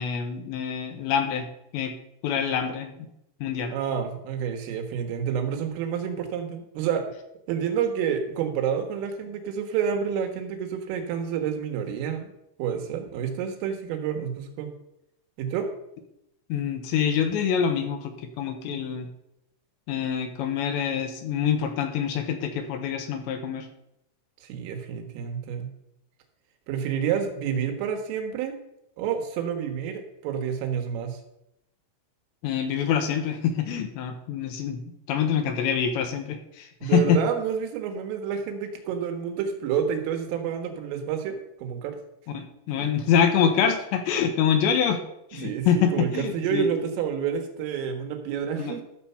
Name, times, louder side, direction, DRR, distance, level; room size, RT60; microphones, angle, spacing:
voice 1, 0.0-1.5 1.7-1.9 2.2-3.1 3.4-3.8 16.5-19.1 19.9-23.7 32.4-34.8 35.1-37.2 42.3-45.0 45.3-46.7 48.6-48.8, left 7 dB, 75° left, 7 dB, 3.0 m, -25 dB
voice 2, 3.7-7.1 7.5-12.3 12.6-14.7 15.4-15.7 24.4-25.7 26.7-28.6 29.0-31.2 36.8-42.0 42.3-42.4 42.8-42.9 45.4-48.8, right 7 dB, 85° right, 5 dB, 4.0 m, -29 dB
13.0 x 6.9 x 5.6 m, 0.83 s
omnidirectional pair, 5.7 m